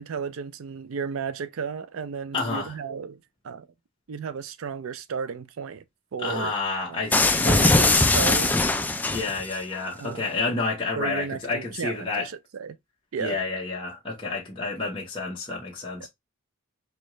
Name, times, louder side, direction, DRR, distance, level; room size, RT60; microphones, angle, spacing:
voice 1, 0.0-3.2 3.4-3.7 4.1-5.8 6.1-6.5 6.9-7.1 7.5-8.6 10.0-10.3 11.0-12.8 13.1-13.4 16.0-16.1, right 6 dB, 75° right, 0.4 m, -33 dB
voice 2, 2.3-2.8 6.2-7.5 7.8-7.9 9.1-12.3 13.2-16.1, left 3 dB, 25° left, 1.0 m, -30 dB
sound 1, 7.1-9.6, left 2 dB, 10° left, 0.3 m, -21 dB
4.4 x 2.4 x 3.0 m
head